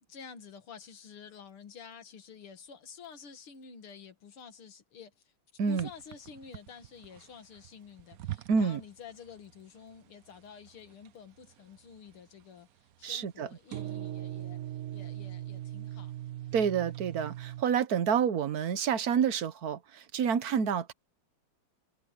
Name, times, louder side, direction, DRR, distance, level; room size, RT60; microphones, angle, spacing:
voice 1, 0.1-5.1 5.7-16.1, left 6 dB, 80° left, 2.7 m, -50 dB
sound 1, 5.8-8.8 9.1-9.6 9.9-10.0 10.3-11.1 11.4-12.1 13.7-17.6, right 13 dB, 70° right, 0.8 m, -40 dB
voice 2, 8.5-8.8 13.0-13.5 16.5-20.9, right 7 dB, 55° right, 1.3 m, -28 dB
omnidirectional pair, 2.3 m